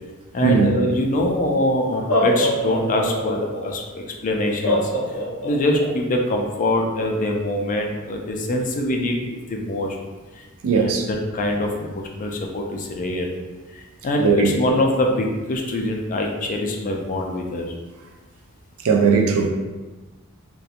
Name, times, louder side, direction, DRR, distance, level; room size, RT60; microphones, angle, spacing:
voice 1, 0.3-4.9 5.4-10.0 10.3-10.4 10.8-13.3 13.7-17.7, left 1 dB, 35° left, 1 dB, 0.3 m, -24 dB
Laughter, 1.2-1.3 1.9-3.6 4.6-5.9, left 1 dB, 85° left, 0.7 m, -23 dB
voice 2, 10.6-11.1 14.2-14.8 18.8-19.5, right 5 dB, 70° right, 2 dB, 0.4 m, -18 dB
2.7 x 2.2 x 2.4 m, 1.2 s
head